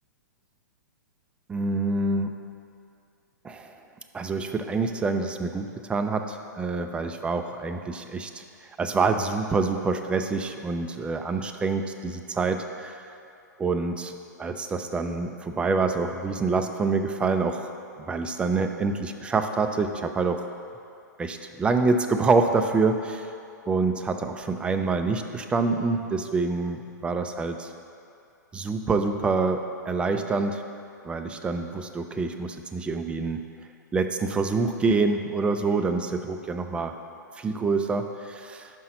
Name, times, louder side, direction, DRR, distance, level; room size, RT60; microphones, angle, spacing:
voice 1, 1.5-2.3 3.4-3.7 4.1-8.4 8.8-13.1 13.6-14.1 14.4-17.7 18.0-20.5 21.2-23.3 23.7-27.7 28.5-30.6 31.0-33.4 33.9-36.9 37.4-38.7, right 4 dB, 10° right, 6 dB, 0.4 m, -26 dB
5.6 x 5.3 x 5.7 m, 2.5 s
hypercardioid pair, 115°, 10 cm